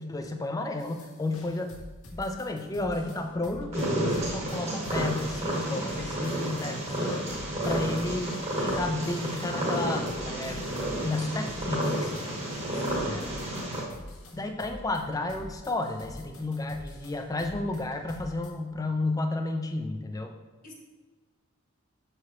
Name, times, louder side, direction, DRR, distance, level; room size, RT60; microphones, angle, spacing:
voice 1, 0.0-1.8 2.1-7.4 7.6-12.3 13.0-13.2 14.3-20.3, left 2 dB, 15° left, 5 dB, 0.4 m, -32 dB
sound 1, 0.8-18.5, left 1 dB, 80° left, 1.0 m, -47 dB
Purr, 3.7-13.8, right 1 dB, 30° right, 1.2 m, -31 dB
voice 2, 12.7-13.7 20.6-20.7, equal, 40° left, -1 dB, 1.2 m, -47 dB
6.9 x 4.8 x 3.0 m, 1.3 s
head